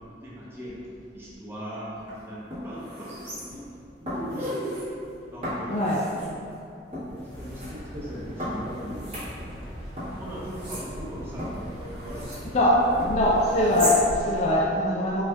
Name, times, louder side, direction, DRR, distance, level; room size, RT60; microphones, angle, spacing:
voice 1, 0.2-0.8 1.1-3.7 4.0-4.7 5.3-6.3 6.9-9.1 10.2-12.3, equal, 15° right, -8 dB, 0.7 m, -39 dB
sound 1, 2.0-2.1 2.5-3.7 4.1-4.8 5.4-6.3 6.9-7.7 8.4-9.7 10.0-12.5 13.0-14.0 14.4-14.5, equal, 30° right, 1.2 m, -35 dB
voice 2, 5.7-6.1 12.5-15.3, left 1 dB, 40° left, -4 dB, 0.3 m, -22 dB
sound 2, 7.3-13.9, equal, 75° right, 1.3 m, -41 dB
4.2 x 2.3 x 2.2 m, 2.5 s
head